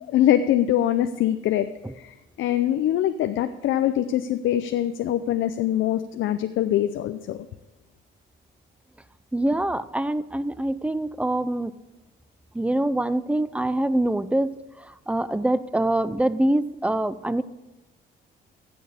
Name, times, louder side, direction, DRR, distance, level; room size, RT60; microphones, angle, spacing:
voice 1, 0.1-1.7 2.0-7.5, left 12 dB, 80° left, 9 dB, 0.6 m, -23 dB
voice 2, 9.3-11.7 12.5-17.4, right 1 dB, 5° right, 15 dB, 0.5 m, -25 dB
15.0 x 7.1 x 5.0 m, 1.1 s
cardioid pair, 90°, 20 cm